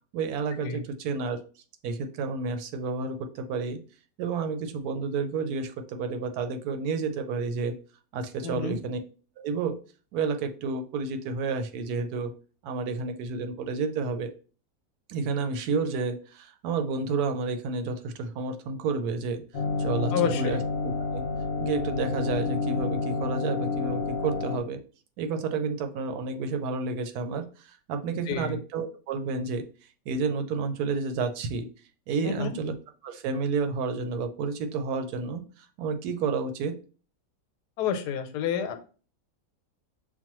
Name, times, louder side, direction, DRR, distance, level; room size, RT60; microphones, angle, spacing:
voice 1, 0.1-1.4 1.8-3.8 4.2-7.8 8.1-9.0 9.4-9.8 10.1-12.3 12.6-14.3 15.1-19.4 19.8-21.2 21.6-24.8 25.2-29.6 30.1-31.7 32.1-32.7 33.0-35.4 35.8-36.8, right 4 dB, 75° right, 7 dB, 1.1 m, -30 dB
voice 2, 8.4-8.8 20.1-20.6 28.3-28.6 32.2-32.5 37.8-38.9, left 7 dB, 85° left, 7 dB, 1.2 m, -29 dB
sound 1, 19.5-24.6, left 3 dB, 60° left, 0.6 m, -29 dB
5.9 x 2.2 x 2.9 m, 0.37 s
omnidirectional pair, 1.7 m